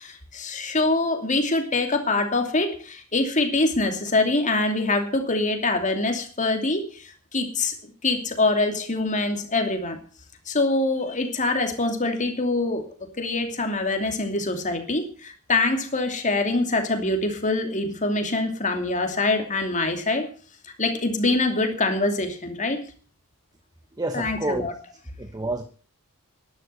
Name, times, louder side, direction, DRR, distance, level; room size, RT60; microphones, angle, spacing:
voice 1, 0.0-10.0 10.5-12.9 13.2-20.3 20.6-22.8 24.1-24.7, left 2 dB, 35° left, 5 dB, 2.8 m, -24 dB
voice 2, 23.9-24.7 25.2-25.6, right 2 dB, 15° right, 7 dB, 1.1 m, -29 dB
12.0 x 11.0 x 6.8 m, 0.41 s
head